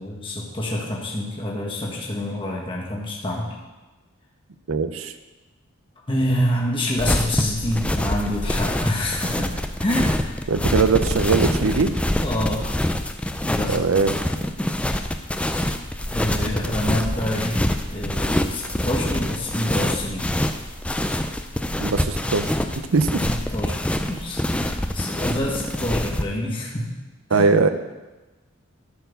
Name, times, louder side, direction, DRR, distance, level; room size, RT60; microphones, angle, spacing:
voice 1, 0.0-3.5 6.1-9.5 9.8-10.3 12.2-12.7 13.4-13.9 16.1-17.6 17.9-20.3 23.3-23.8 24.1-26.9 27.3-27.5, left 1 dB, 25° left, -3 dB, 1.4 m, -27 dB
voice 2, 4.7-5.1 10.5-11.9 13.7-14.1 21.8-22.5 22.9-23.2 27.3-27.7, right 4 dB, 65° right, 10 dB, 0.6 m, -20 dB
sound 1, 7.0-26.2, left 1 dB, 5° left, 0.4 m, -25 dB
11.5 x 4.6 x 6.9 m, 1.1 s
head